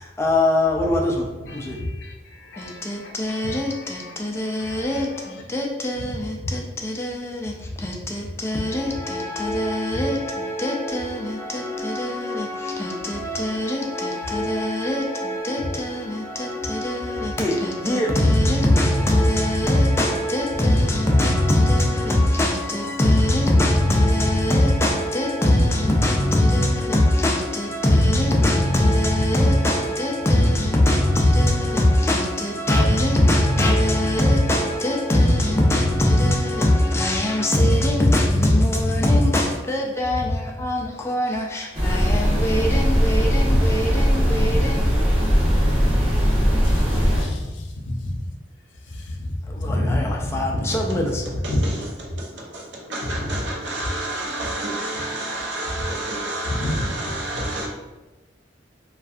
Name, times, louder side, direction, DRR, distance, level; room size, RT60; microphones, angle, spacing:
voice 1, 0.0-1.8 2.6-44.9 49.5-51.2, left 1 dB, 15° left, 0.3 m, -21 dB
voice 2, 1.5-5.4 9.9-10.0 40.2-40.3 43.5-43.7 46.6-48.3 48.9-51.0 51.5-51.9 53.0-53.5 55.0-55.1 55.8-55.9 56.4-56.9 57.3-57.4, left 1 dB, 75° left, 0.4 m, -29 dB
sound 1, 41.7-47.2, equal, 30° right, 0.7 m, -19 dB
voice 3, 51.4-51.8 52.2-57.7, right 1 dB, 75° right, 0.6 m, -30 dB
2.5 x 2.3 x 2.3 m
head